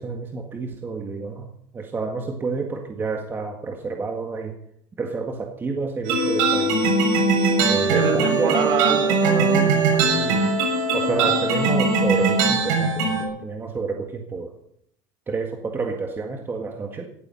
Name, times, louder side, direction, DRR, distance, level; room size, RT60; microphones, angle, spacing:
voice 1, 0.0-4.6 5.0-6.9 7.7-8.6 10.2-10.6 10.9-14.5 15.3-17.1, right 4 dB, 20° right, 3 dB, 1.8 m, -29 dB
sound 1, 6.0-13.2, right 3 dB, 85° right, 6.7 m, -20 dB
voice 2, 7.9-10.5 11.1-11.3, right 6 dB, 55° right, 5 dB, 4.3 m, -27 dB
18.0 x 12.5 x 5.6 m, 0.71 s
cardioid pair, 135°, 10 cm